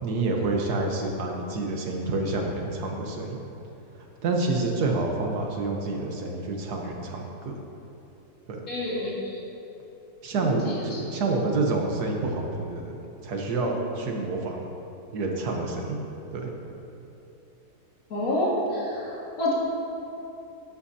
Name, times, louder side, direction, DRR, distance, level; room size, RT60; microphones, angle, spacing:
voice 1, 0.0-3.4 4.2-7.6 8.5-8.6 10.2-10.7 11.0-12.9 13.2-14.6 15.1-16.0 16.3-16.5, right 3 dB, 80° right, 1 dB, 1.6 m, -28 dB
voice 2, 8.7-9.1 10.6-10.7 18.1-19.1 19.4-19.5, left 1 dB, 60° left, -6 dB, 2.5 m, -27 dB
11.5 x 9.9 x 2.8 m, 2.8 s
omnidirectional pair, 1.7 m